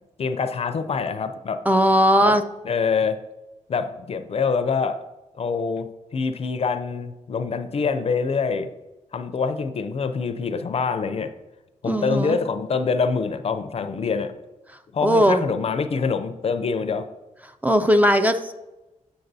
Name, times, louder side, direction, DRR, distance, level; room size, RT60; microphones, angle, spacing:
voice 1, 0.2-1.6 2.2-2.3 2.6-3.2 3.7-5.0 5.4-8.7 9.1-11.3 11.8-14.3 14.9-17.1, left 5 dB, 50° left, 10 dB, 0.5 m, -25 dB
voice 2, 1.7-2.4 11.9-12.4 15.0-15.5 17.6-18.5, equal, 10° right, 8 dB, 0.4 m, -18 dB
7.8 x 6.5 x 2.7 m, 1.0 s
wide cardioid pair, 105°, 13 cm